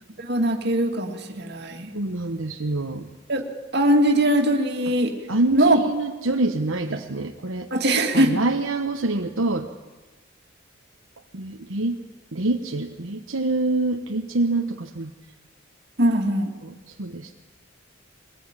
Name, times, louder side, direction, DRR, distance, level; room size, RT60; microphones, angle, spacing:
voice 1, 0.2-1.9 3.3-3.5 3.7-5.2 5.5-5.8 6.9-7.0 7.7-8.4 16.0-16.5, right 1 dB, 55° right, 4 dB, 2.3 m, -21 dB
voice 2, 1.9-3.1 5.3-7.7 8.1-9.7 11.3-12.0 12.3-15.1 16.6-16.7 17.0-17.3, right 2 dB, 80° right, 3 dB, 1.2 m, -26 dB
23.0 x 19.0 x 8.9 m, 1.2 s
head